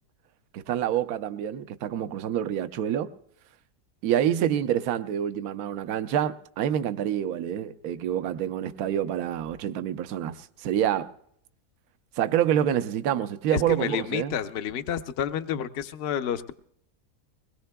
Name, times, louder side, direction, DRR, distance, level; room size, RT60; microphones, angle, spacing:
voice 1, 0.5-3.1 4.0-11.1 12.2-14.3, right 10 dB, 70° right, 1.1 m, -27 dB
voice 2, 13.5-16.5, left 9 dB, 55° left, 0.7 m, -30 dB
21.5 x 20.5 x 2.2 m
omnidirectional pair, 1.7 m